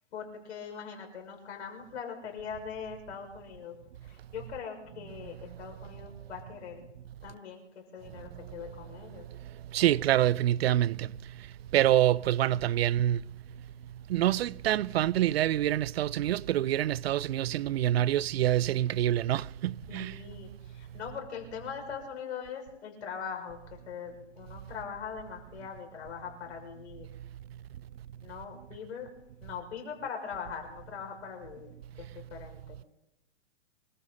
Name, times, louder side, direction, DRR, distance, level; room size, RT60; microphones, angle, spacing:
voice 1, 0.1-3.8 4.0-6.8 7.2-9.2 19.9-27.1 28.2-29.1 29.4-32.9, left 6 dB, 65° left, 6.3 m, -41 dB
voice 2, 9.7-11.1 11.7-13.2 14.1-20.1, right 12 dB, 55° right, 0.5 m, -26 dB
25.5 x 14.0 x 4.2 m
hypercardioid pair, 160°, 36 cm